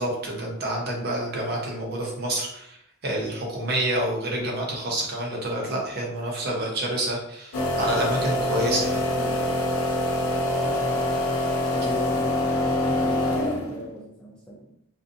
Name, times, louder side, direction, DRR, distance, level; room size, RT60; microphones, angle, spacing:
voice 1, 0.0-2.7 3.0-9.0, right 1 dB, 50° right, -1 dB, 0.7 m, -28 dB
sound 1, 7.5-13.9, left 1 dB, 80° left, 0.4 m, -25 dB
voice 2, 9.1-9.6 10.5-11.4 11.7-14.7, left 1 dB, 5° left, -4 dB, 0.3 m, -38 dB
2.5 x 2.4 x 2.5 m, 0.74 s
head